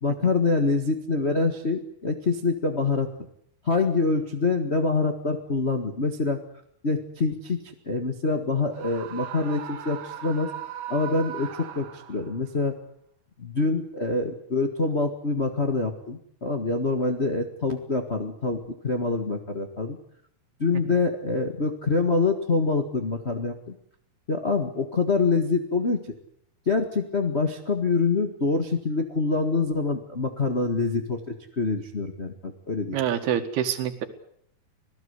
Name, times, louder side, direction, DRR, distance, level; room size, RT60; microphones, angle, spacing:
voice 1, 0.0-3.1 3.6-6.4 6.8-10.5 10.9-12.7 13.4-20.0 20.6-23.7 24.3-26.1 26.7-33.0, left 3 dB, 75° left, 4 dB, 0.6 m, -25 dB
Screaming, 8.7-12.4, right 10 dB, 55° right, 2.2 m, -38 dB
voice 2, 32.9-34.1, right 10 dB, 90° right, 8 dB, 3.7 m, -26 dB
26.0 x 17.5 x 8.1 m, 0.69 s
omnidirectional pair, 4.3 m